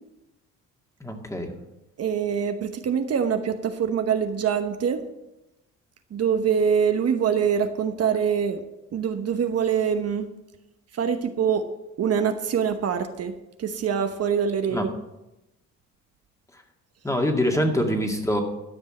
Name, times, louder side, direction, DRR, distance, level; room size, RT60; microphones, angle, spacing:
voice 1, 1.0-1.5 14.7-14.8 17.0-18.4, equal, 10° left, 3 dB, 2.0 m, -24 dB
voice 2, 2.0-5.0 6.1-8.6 8.9-10.3 10.9-11.6 12.0-14.9, right 7 dB, 55° right, 7 dB, 1.0 m, -24 dB
12.5 x 5.4 x 7.8 m, 0.94 s
cardioid pair, 90°, 30 cm